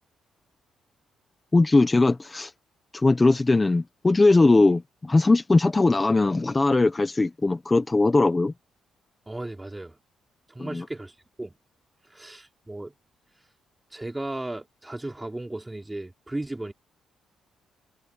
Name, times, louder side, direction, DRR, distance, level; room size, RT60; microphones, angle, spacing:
voice 1, 1.5-2.5 2.9-8.5 10.6-10.8, left 3 dB, 20° left, 1.3 m, -20 dB
voice 2, 9.3-10.0 10.5-11.1 11.4-11.5 12.1-12.9 13.9-16.7, right 2 dB, 15° right, 3.9 m, -35 dB
cardioid pair, 90°, 0 cm